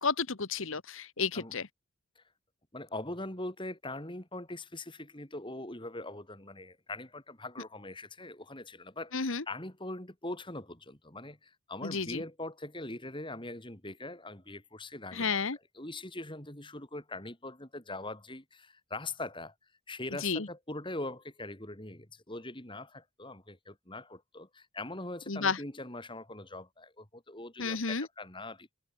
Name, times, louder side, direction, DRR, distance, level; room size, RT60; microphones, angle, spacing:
voice 1, 0.0-1.7 9.1-9.4 11.8-12.2 15.1-15.6 20.2-20.5 25.3-25.6 27.6-28.1, left 5 dB, 60° left, 1.3 m, -31 dB
voice 2, 2.7-15.4 15.7-19.5 19.9-28.7, left 2 dB, 20° left, 3.7 m, -42 dB
head